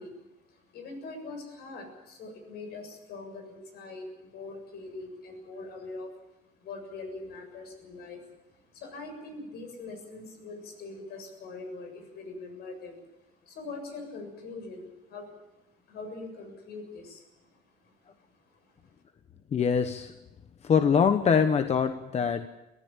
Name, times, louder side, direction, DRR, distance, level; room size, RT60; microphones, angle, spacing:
voice 1, 0.0-6.1 6.4-18.9, left 3 dB, 70° left, 5 dB, 7.3 m, -43 dB
voice 2, 19.5-20.1 20.6-22.5, left 6 dB, 40° left, 9 dB, 1.1 m, -24 dB
22.5 x 15.5 x 8.9 m, 0.98 s
cardioid pair, 110°, 17 cm